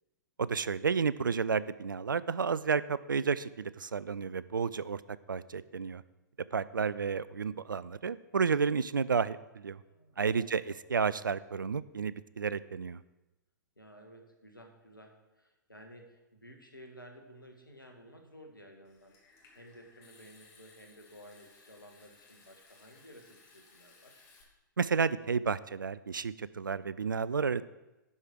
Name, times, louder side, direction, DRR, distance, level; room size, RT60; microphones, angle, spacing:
voice 1, 0.4-5.0 5.3-6.0 6.5-9.8 10.2-13.0 24.8-27.6, right 5 dB, 80° right, 18 dB, 0.4 m, -31 dB
voice 2, 9.8-10.8 13.8-19.2 19.5-24.2, equal, 90° left, 3 dB, 1.7 m, -54 dB
Water tap faucet / Sink (filling or washing) / Trickle dribble, 18.8-24.4, left 4 dB, 35° left, 2.4 m, -61 dB
11.0 x 4.9 x 6.1 m, 1.0 s
figure-of-eight pair, 105°, 11 cm